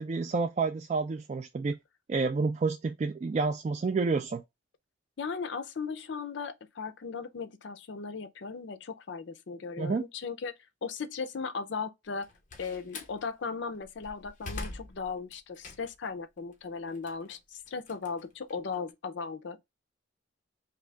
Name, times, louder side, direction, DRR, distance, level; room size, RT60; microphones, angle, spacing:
voice 1, 0.0-1.8 2.1-4.4 9.8-10.0, right 4 dB, 35° right, 0.3 m, -29 dB
voice 2, 5.2-10.5 10.8-12.3 12.6-19.6, left 5 dB, 65° left, 0.5 m, -37 dB
Slam, 12.1-13.2 13.7-16.1 16.5-18.9, left 2 dB, 40° left, 0.8 m, -44 dB
3.7 x 2.7 x 3.3 m
head